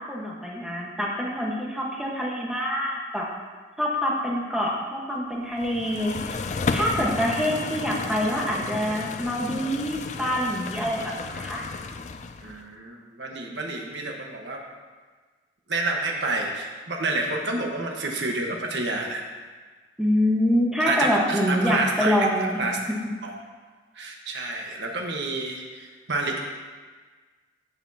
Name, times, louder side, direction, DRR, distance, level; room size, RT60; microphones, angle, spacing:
voice 1, 0.1-3.3 3.8-11.7 20.0-22.6, equal, 5° right, -4 dB, 1.3 m, -26 dB
sound 1, 5.6-12.6, left 4 dB, 40° left, 0.4 m, -33 dB
voice 2, 12.4-14.6 15.7-19.2 20.8-22.2 22.6-22.8 23.2-23.4 23.9-26.4, right 2 dB, 75° right, 1 dB, 1.3 m, -29 dB
15.5 x 7.0 x 2.8 m, 1.4 s
head